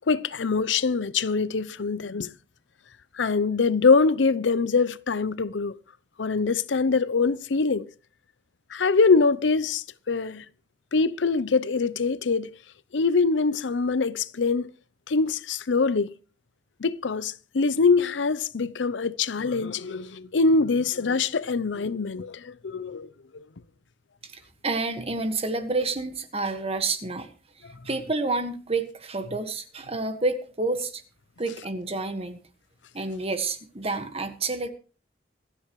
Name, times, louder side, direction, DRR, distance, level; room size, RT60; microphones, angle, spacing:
voice 1, 0.1-2.3 3.2-5.8 6.2-7.9 8.7-10.4 10.9-12.5 12.9-14.7 15.1-16.1 16.8-23.4, left 4 dB, 85° left, 0.6 m, -24 dB
voice 2, 24.2-27.3 27.8-31.0 31.4-32.4 32.9-34.7, right 3 dB, 35° right, 1.5 m, -29 dB
25.5 x 10.0 x 3.1 m
head